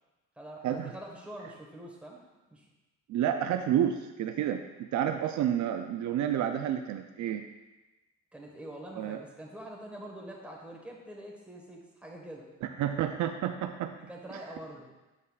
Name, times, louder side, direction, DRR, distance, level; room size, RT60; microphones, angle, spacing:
voice 1, 0.4-2.2 2.5-2.7 8.3-12.5 14.1-14.9, right 1 dB, 5° right, -2 dB, 1.4 m, -45 dB
voice 2, 3.1-7.4 9.0-9.2 12.6-13.9, right 10 dB, 70° right, 6 dB, 0.5 m, -30 dB
8.1 x 5.3 x 2.4 m, 1.1 s
cardioid pair, 90°, 30 cm